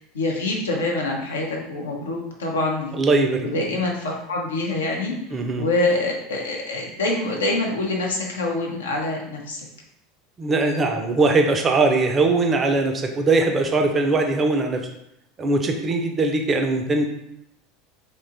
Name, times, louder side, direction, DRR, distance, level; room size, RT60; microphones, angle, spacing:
voice 1, 0.0-3.0 3.4-5.1 5.6-9.6, left 2 dB, 75° left, 0 dB, 0.5 m, -25 dB
voice 2, 2.9-3.5 5.3-5.7 10.4-14.8 15.4-17.0, right 3 dB, 30° right, 4 dB, 0.4 m, -20 dB
2.9 x 2.2 x 2.6 m, 0.80 s
figure-of-eight pair, 75°, 0 cm